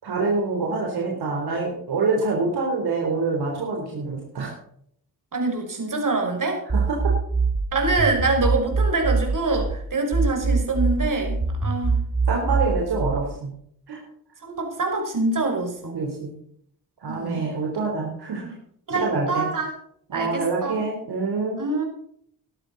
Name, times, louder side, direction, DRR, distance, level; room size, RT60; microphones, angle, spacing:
voice 1, 0.0-4.5 6.7-7.1 12.3-13.5 13.9-14.0 15.9-16.4 17.0-18.6 18.9-19.5 20.1-21.6, right 3 dB, 70° right, -1 dB, 4.0 m, -26 dB
voice 2, 5.3-6.6 7.7-12.0 12.3-12.4 14.4-16.0 17.1-17.5 18.9-19.7 20.1-20.8 21.6-21.8, right 3 dB, 50° right, 3 dB, 5.6 m, -25 dB
sound 1, 6.7-9.7 10.1-13.1, right 4 dB, 30° right, 2.4 m, -23 dB
15.5 x 12.0 x 4.1 m, 0.66 s
supercardioid pair, 50°, 40 cm